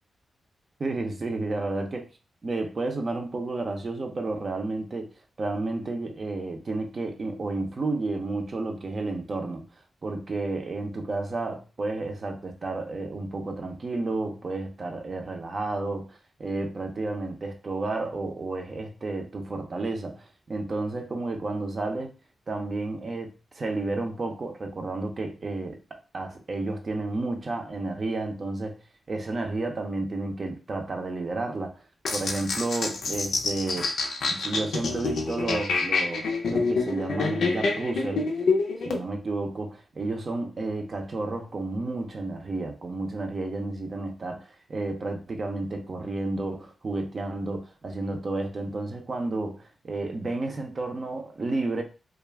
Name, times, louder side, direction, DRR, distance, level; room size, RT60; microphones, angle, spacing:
voice 1, 0.8-2.1 2.4-5.1 5.4-9.7 10.0-22.1 22.5-28.8 29.1-31.7 32.1-33.9 34.3-38.3 38.8-51.8, right 2 dB, 50° right, 0.5 m, -31 dB
sound 1, 32.0-39.0, left 3 dB, 85° left, 0.5 m, -27 dB
2.3 x 2.0 x 3.2 m
cardioid pair, 75°, 0 cm